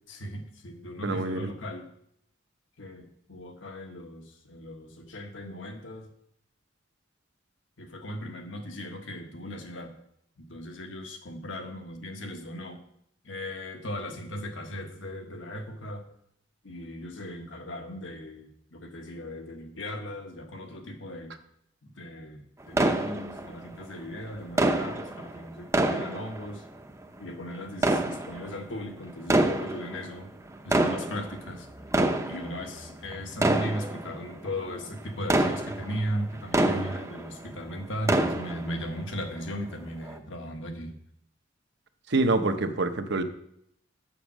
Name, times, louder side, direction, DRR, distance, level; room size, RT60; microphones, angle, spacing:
voice 1, 0.1-1.9 2.8-6.1 7.8-9.9 10.4-12.8 13.2-16.0 16.6-21.3 22.0-26.6 27.2-30.3 30.6-31.7 32.3-41.0, equal, 80° left, 4 dB, 1.4 m, -37 dB
voice 2, 1.0-1.5 36.7-36.8 42.1-43.2, right 2 dB, 65° right, 8 dB, 0.9 m, -26 dB
sound 1, 22.7-23.8 24.6-26.9 27.7-28.7 29.2-30.1 30.5-37.5 37.8-38.9 39.4-39.5 40.1-40.2, right 1 dB, 15° right, 0.6 m, -27 dB
7.3 x 7.1 x 6.1 m, 0.72 s
head